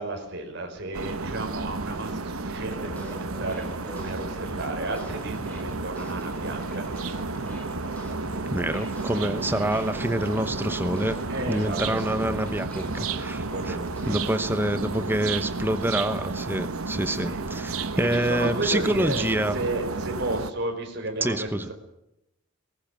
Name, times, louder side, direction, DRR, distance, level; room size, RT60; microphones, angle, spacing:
voice 1, 0.0-6.8 11.3-12.2 13.5-14.2 17.2-19.2 19.5-21.7, right 2 dB, 50° right, 2 dB, 5.4 m, -33 dB
sound 1, 0.9-20.5, right 3 dB, 75° right, 1.1 m, -32 dB
sound 2, 2.7-14.3, left 1 dB, 5° left, 5.1 m, -41 dB
voice 2, 8.5-11.2 11.5-13.8 14.1-19.6 21.2-21.7, right 1 dB, 10° right, 11 dB, 0.9 m, -27 dB
20.5 x 17.5 x 7.6 m, 0.85 s
head